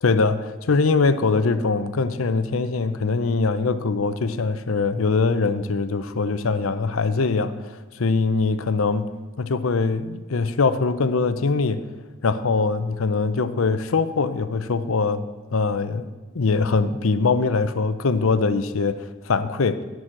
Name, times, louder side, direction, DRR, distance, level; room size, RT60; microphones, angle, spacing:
voice 1, 0.0-11.9 12.2-19.8, left 4 dB, 80° left, 12 dB, 0.6 m, -22 dB
10.0 x 6.2 x 7.4 m, 1.2 s
head